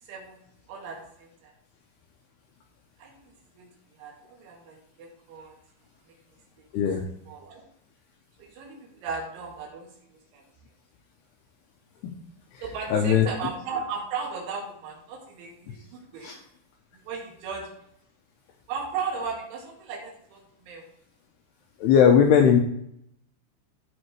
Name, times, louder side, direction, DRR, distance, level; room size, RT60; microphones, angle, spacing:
voice 1, 0.7-1.5 3.0-3.7 4.0-5.5 6.6-6.7 7.3-7.6 8.4-10.4 12.6-16.3 17.1-17.7 18.7-20.9 21.8-21.9, right 5 dB, 80° right, 0 dB, 4.3 m, -36 dB
voice 2, 12.9-13.3 16.2-16.3 21.8-22.6, left 7 dB, 80° left, 2 dB, 2.4 m, -18 dB
14.5 x 5.2 x 3.1 m, 0.72 s
omnidirectional pair, 5.5 m